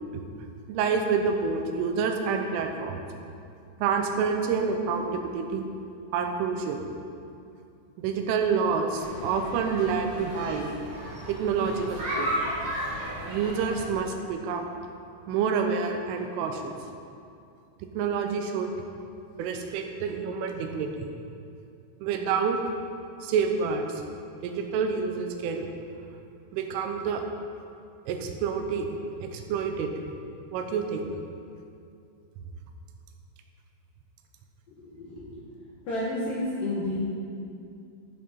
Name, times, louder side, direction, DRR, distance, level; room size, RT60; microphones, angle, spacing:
voice 1, 0.7-3.0 3.8-5.6 6.1-6.9 8.0-10.7 11.3-12.3 13.3-14.7 15.3-16.7 17.9-18.7 19.4-21.1 22.0-22.6 23.2-24.0 24.4-25.7 26.5-27.2 28.1-28.9 29.2-29.9 30.5-31.1, right 5 dB, 85° right, 4 dB, 3.2 m, -28 dB
sound 1, 8.9-13.9, equal, 45° right, 3.1 m, -34 dB
voice 2, 34.7-35.5 35.8-37.0, left 1 dB, 65° left, -7 dB, 2.3 m, -31 dB
15.0 x 6.4 x 4.2 m, 2.5 s
omnidirectional pair, 5.7 m